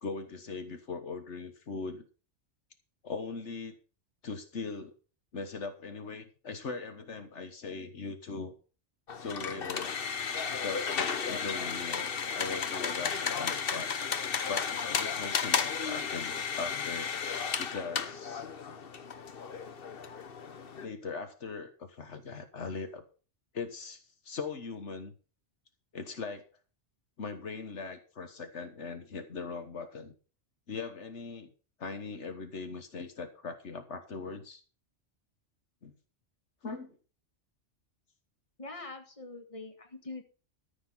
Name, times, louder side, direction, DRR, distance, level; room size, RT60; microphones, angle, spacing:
voice 1, 0.0-2.0 3.0-3.7 4.2-4.9 5.3-8.6 9.2-10.0 10.5-13.9 14.5-17.1 17.6-18.5 20.8-23.0 23.5-25.1 25.9-26.4 27.2-30.1 30.7-31.5 31.8-34.6 35.8-35.9 36.6-37.0, left 4 dB, 75° left, 7 dB, 1.7 m, -40 dB
sound 1, 9.1-20.8, left 6 dB, 55° left, 1.2 m, -33 dB
voice 2, 38.6-40.2, left 3 dB, 30° left, 4 dB, 2.3 m, -43 dB
13.5 x 7.2 x 5.7 m, 0.36 s
omnidirectional pair, 1.2 m